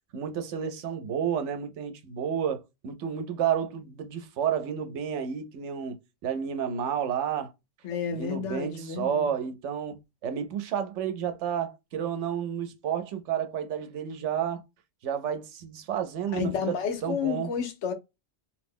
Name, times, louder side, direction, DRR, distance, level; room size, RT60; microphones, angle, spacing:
voice 1, 0.1-6.0 6.2-7.5 8.1-14.6 15.0-16.8 17.0-17.5, right 8 dB, 90° right, 0.9 m, -31 dB
voice 2, 7.8-9.3 16.3-17.9, left 7 dB, 85° left, 1.0 m, -31 dB
2.7 x 2.0 x 3.5 m
omnidirectional pair, 1.2 m